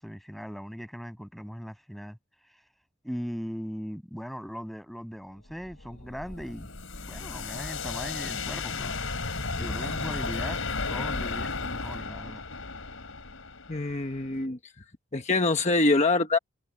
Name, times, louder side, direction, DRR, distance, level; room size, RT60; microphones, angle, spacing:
voice 1, 0.0-2.2 3.0-6.7 7.1-9.0 9.5-10.6 10.9-12.4, equal, ahead, 7.5 m, -39 dB
sound 1, 5.5-14.4, left 4 dB, 70° left, 3.9 m, -34 dB
voice 2, 13.7-14.6 15.1-16.4, left 3 dB, 30° left, 1.1 m, -24 dB
head